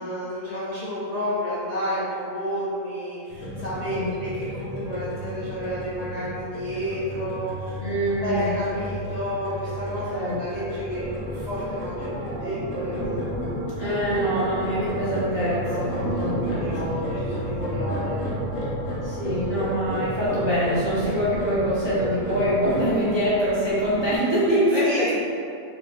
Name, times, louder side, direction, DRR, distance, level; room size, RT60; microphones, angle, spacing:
voice 1, 0.0-7.8 8.2-13.6 15.6-18.2 24.8-25.1, equal, 55° left, -10 dB, 0.4 m, -31 dB
sound 1, 3.3-22.8, equal, 70° left, 1.2 m, -32 dB
voice 2, 7.8-8.5 10.1-10.7 13.8-17.0 19.0-25.1, equal, 35° right, -11 dB, 0.5 m, -24 dB
sound 2, 11.0-24.2, right 1 dB, 65° right, 0.9 m, -35 dB
4.0 x 2.8 x 2.5 m, 2.5 s
omnidirectional pair, 1.4 m